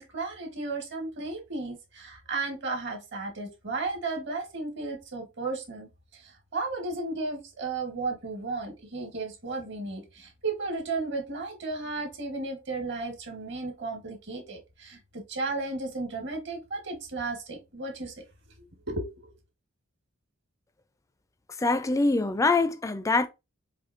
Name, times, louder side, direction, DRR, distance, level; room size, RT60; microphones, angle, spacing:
voice 1, 0.0-18.1 18.9-19.3, right 3 dB, 55° right, 1.3 m, -34 dB
voice 2, 21.6-23.3, left 3 dB, 15° left, 0.3 m, -24 dB
4.3 x 2.7 x 2.5 m
head